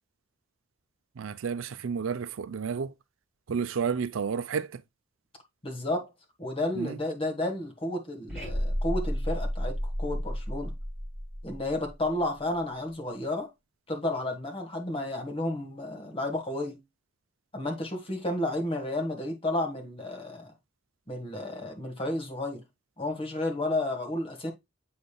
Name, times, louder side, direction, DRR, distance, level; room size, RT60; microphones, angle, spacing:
voice 1, 1.2-2.9 3.5-4.7 6.8-6.9, right 6 dB, 75° right, 0.5 m, -31 dB
voice 2, 5.6-6.1 6.4-10.7 11.4-13.5 13.9-16.8 17.5-20.5 21.1-22.6 23.0-24.5, left 1 dB, 30° left, 1.7 m, -32 dB
sound 1, 8.3-12.4, equal, ahead, 3.8 m, -32 dB
7.7 x 5.3 x 2.3 m
head